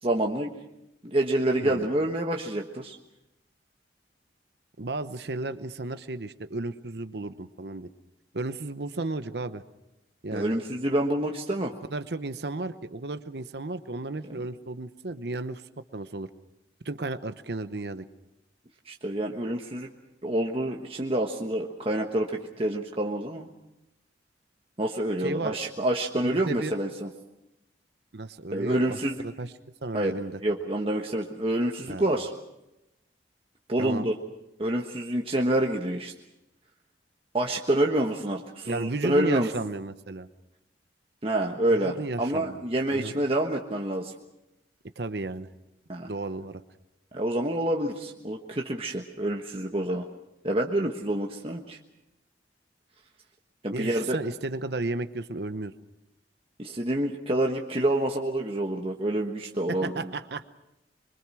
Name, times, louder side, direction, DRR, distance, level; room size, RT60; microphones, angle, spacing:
voice 1, 0.0-0.5 1.0-3.0 10.3-11.7 14.3-14.4 18.8-19.9 20.2-23.5 24.8-27.1 28.5-29.2 29.9-32.3 33.7-34.1 34.6-36.1 37.3-39.5 41.2-44.1 45.9-46.1 47.1-50.0 50.4-51.8 53.6-54.2 56.6-59.9, right 1 dB, 30° right, 1 dB, 1.3 m, -27 dB
voice 2, 4.8-7.9 8.3-9.6 10.2-10.5 11.9-15.6 15.9-16.3 16.8-18.0 25.2-25.6 26.2-26.8 28.1-29.0 29.2-29.5 29.8-30.4 31.9-32.0 33.8-34.1 38.6-40.3 41.7-42.6 42.9-43.2 45.0-45.5 46.1-46.6 53.7-55.7 59.7-60.5, right 2 dB, 65° right, 11 dB, 0.9 m, -33 dB
25.5 x 23.5 x 6.3 m, 0.91 s
head